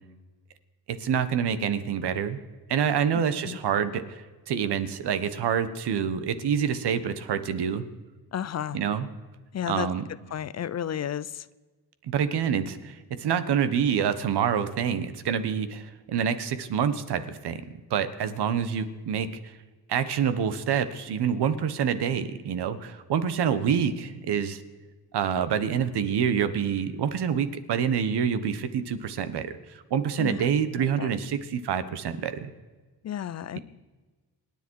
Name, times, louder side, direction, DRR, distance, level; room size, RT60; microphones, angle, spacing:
voice 1, 1.0-2.4 2.7-7.8 8.7-9.1 9.7-10.0 12.0-17.6 17.9-19.3 19.9-24.6 25.1-29.5 29.9-32.5, right 7 dB, 75° right, 1.5 m, -27 dB
voice 2, 3.1-3.6 8.3-8.8 9.5-9.9 10.3-11.5 30.2-30.5 30.8-31.1 33.0-33.6, left 9 dB, 40° left, 0.6 m, -32 dB
27.0 x 10.5 x 4.8 m
cardioid pair, 125°, 40 cm